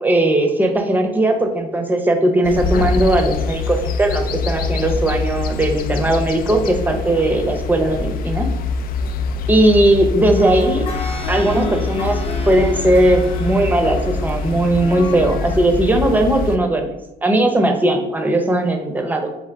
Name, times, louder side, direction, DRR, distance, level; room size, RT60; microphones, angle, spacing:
voice 1, 0.0-8.5 9.5-10.9 11.3-16.9 17.2-19.3, right 1 dB, 10° right, 4 dB, 0.6 m, -18 dB
sound 1, 2.4-16.6, left 4 dB, 60° left, 0.4 m, -24 dB
sound 2, 10.4-15.7 16.2-16.3, left 4 dB, 35° left, 0.9 m, -32 dB
3.7 x 3.5 x 3.4 m, 0.99 s
cardioid pair, 110°, 17 cm